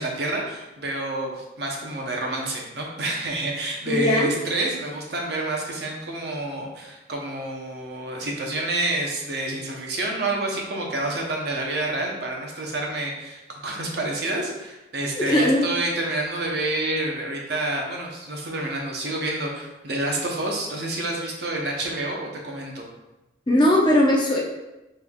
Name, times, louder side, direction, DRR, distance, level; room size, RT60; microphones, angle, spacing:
voice 1, 0.0-22.9, right 2 dB, 60° right, -1 dB, 0.8 m, -28 dB
voice 2, 3.9-4.3 15.3-15.6 23.5-24.4, left 1 dB, 25° left, -2 dB, 0.6 m, -19 dB
5.4 x 3.3 x 2.3 m, 0.99 s
head